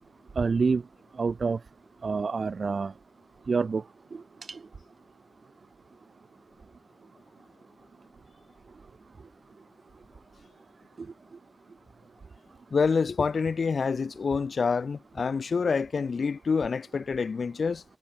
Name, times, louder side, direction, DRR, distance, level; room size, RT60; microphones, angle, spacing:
voice 1, 0.4-0.8 1.2-1.6 2.0-2.9 3.5-3.8 4.5-4.6, right 4 dB, 70° right, 1.7 m, -26 dB
voice 2, 12.7-17.8, left 5 dB, 80° left, 0.9 m, -27 dB
wide cardioid pair, 85°, 0 cm